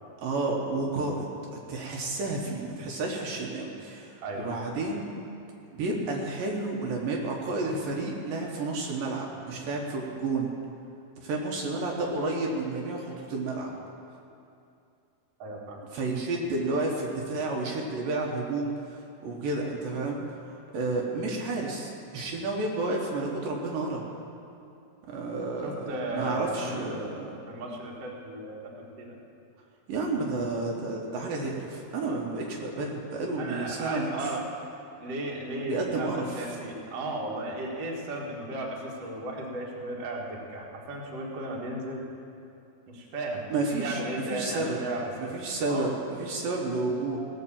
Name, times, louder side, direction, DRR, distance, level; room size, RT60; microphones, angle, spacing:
voice 1, 0.2-5.1 5.7-10.5 11.2-13.7 15.9-20.3 20.7-24.0 25.1-27.3 29.9-34.3 35.6-36.4 43.5-44.0 44.3-44.8 45.2-47.2, right 2 dB, 70° right, -1 dB, 2.7 m, -31 dB
voice 2, 15.4-15.9 25.6-27.1 27.5-28.7 29.0-29.2 33.4-34.4 35.0-42.1 42.9-43.4 43.8-45.3 45.7-45.9, right 1 dB, 50° right, -2 dB, 2.2 m, -35 dB
18.0 x 6.5 x 7.3 m, 2.6 s
omnidirectional pair, 4.4 m